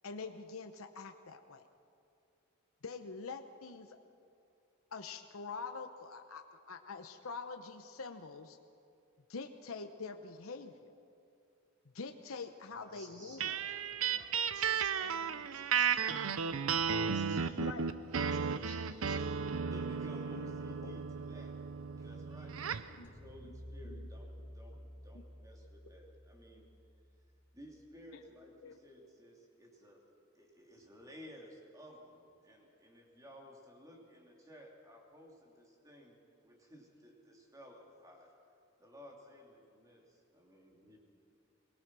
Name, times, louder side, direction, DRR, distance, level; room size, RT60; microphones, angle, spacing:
voice 1, 0.0-1.6 2.8-4.0 4.9-8.6 9.3-10.9 11.9-13.5 17.6-17.8 20.3-21.0 22.9-23.1 23.4-23.5 23.8-24.1 28.6-28.8, left 4 dB, 80° left, 6 dB, 0.9 m, -45 dB
voice 2, 12.7-16.5 17.0-19.6 21.2-21.5, right 1 dB, 35° right, -3 dB, 6.6 m, -57 dB
sound 1, 13.4-22.9, right 6 dB, 80° right, 0.7 m, -34 dB
voice 3, 19.7-21.5 21.9-26.7 27.5-30.0 30.3-38.3 38.8-41.0, equal, 15° right, -1 dB, 3.1 m, -55 dB
sound 2, 23.0-27.4, equal, 40° left, 4.4 m, -51 dB
23.0 x 20.5 x 6.2 m, 2.5 s
head